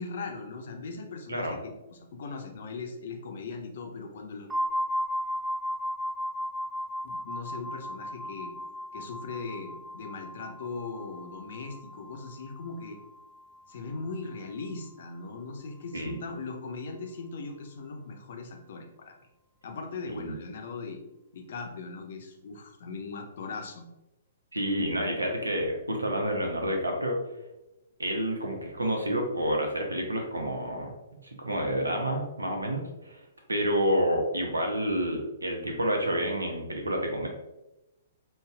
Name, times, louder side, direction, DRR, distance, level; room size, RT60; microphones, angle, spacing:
voice 1, 0.0-4.5 7.0-8.5 8.9-13.0 13.7-19.1 19.6-21.0 21.3-23.9, left 4 dB, 55° left, 3 dB, 0.6 m, -39 dB
sound 1, 4.5-14.1, equal, 10° right, 0.4 m, -36 dB
voice 2, 24.5-27.2 28.0-33.2 33.5-37.3, equal, 80° right, 2 dB, 0.7 m, -29 dB
5.2 x 2.3 x 2.3 m, 0.98 s
figure-of-eight pair, 115°, 0 cm